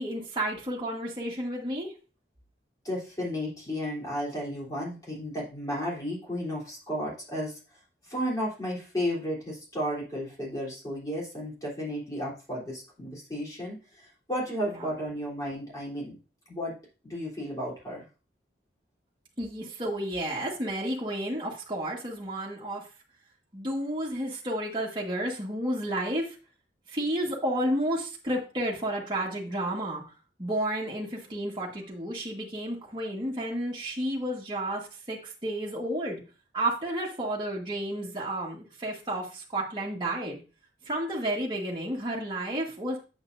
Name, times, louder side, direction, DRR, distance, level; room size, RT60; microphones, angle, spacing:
voice 1, 0.0-1.9 14.6-14.9 19.4-22.9 23.5-26.3 26.9-30.0 30.4-36.2 36.5-40.4 40.8-43.0, right 1 dB, 25° right, -4 dB, 1.6 m, -31 dB
voice 2, 2.8-7.6 8.1-16.2 16.5-16.7 17.0-18.0, equal, 20° left, -4 dB, 3.5 m, -33 dB
8.5 x 7.3 x 2.7 m, 0.34 s
head